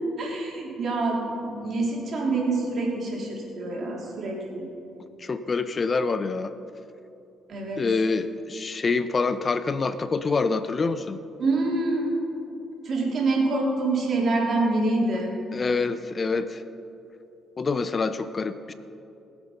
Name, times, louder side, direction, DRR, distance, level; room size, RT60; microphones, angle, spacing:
voice 1, 0.2-4.7 7.5-7.8 11.4-12.1 12.8-15.3, right 2 dB, 55° right, -3 dB, 3.7 m, -26 dB
voice 2, 5.2-6.5 7.8-11.2 15.5-16.6 17.6-18.7, left 4 dB, 35° left, 12 dB, 0.6 m, -26 dB
20.0 x 8.1 x 5.3 m, 2.8 s
cardioid pair, 90°, 0 cm